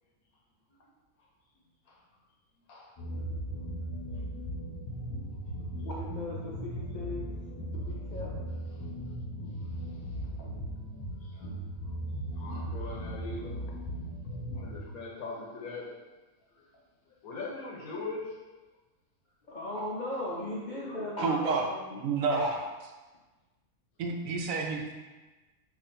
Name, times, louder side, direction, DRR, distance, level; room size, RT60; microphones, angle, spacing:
sound 1, 3.0-14.8, right 1 dB, 20° left, 0.7 m, -37 dB
voice 1, 5.8-7.3 7.7-8.4 19.5-22.0 22.3-22.5, left 1 dB, 50° left, -6 dB, 0.5 m, -37 dB
voice 2, 9.8-10.6 11.2-11.6 12.3-13.8 14.5-16.0 16.6-16.7 17.2-18.4 20.8-21.0, left 3 dB, 80° left, -1 dB, 1.3 m, -41 dB
voice 3, 21.2-21.6 22.0-22.5 24.0-24.9, right 4 dB, 70° right, 2 dB, 0.9 m, -29 dB
4.9 x 2.6 x 4.2 m, 1.2 s
omnidirectional pair, 1.5 m